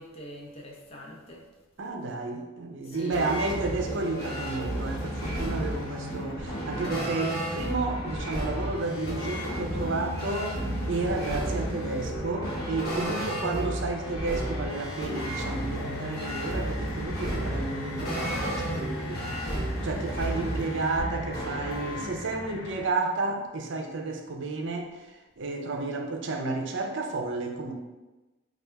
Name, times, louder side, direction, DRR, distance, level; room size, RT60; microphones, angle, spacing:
voice 1, 0.0-1.5 2.8-3.3 13.0-13.4 19.8-20.3, equal, 30° left, -2 dB, 0.6 m, -44 dB
voice 2, 1.8-10.6 10.9-27.7, right 3 dB, 60° right, 3 dB, 0.5 m, -32 dB
sound 1, 2.9-22.0, right 1 dB, 45° left, 0.9 m, -33 dB
sound 2, 4.1-22.9, left 2 dB, 85° left, 0.6 m, -41 dB
3.4 x 2.4 x 4.4 m, 1.1 s
head